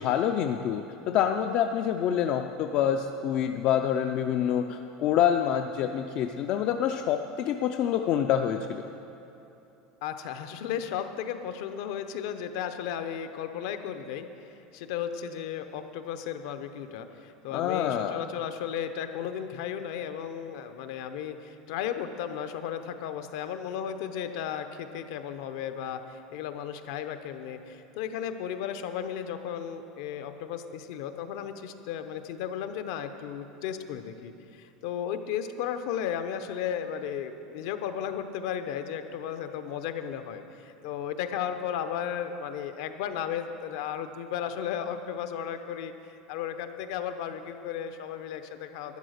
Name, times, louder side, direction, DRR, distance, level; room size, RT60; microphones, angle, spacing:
voice 1, 0.0-8.8 17.5-18.2, left 9 dB, 40° left, 6 dB, 0.4 m, -27 dB
voice 2, 10.0-45.9 46.3-49.0, left 9 dB, 60° left, 9 dB, 0.8 m, -35 dB
12.0 x 9.8 x 6.5 m, 2.9 s
cardioid pair, 175°, 3 cm